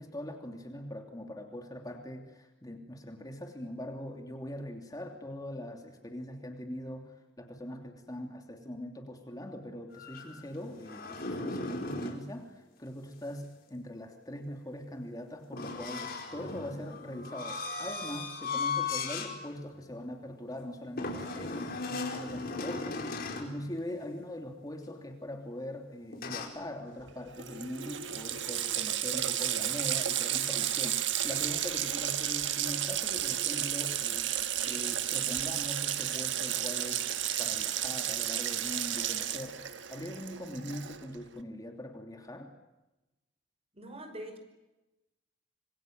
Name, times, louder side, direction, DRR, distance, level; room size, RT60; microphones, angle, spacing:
voice 1, 0.0-34.3 34.6-37.0 37.4-42.5, left 1 dB, 20° left, 4 dB, 2.9 m, -42 dB
sound 1, 9.9-12.2 15.5-19.4 19.8-20.0 21.0-23.5 26.1-26.5, left 3 dB, 50° left, 4.7 m, -37 dB
Water tap faucet, 27.1-27.2 27.4-41.1, right 11 dB, 70° right, 1.6 m, -32 dB
voice 2, 43.7-44.4, right 1 dB, 30° right, 7 dB, 5.2 m, -43 dB
27.0 x 23.5 x 9.4 m, 1.0 s
head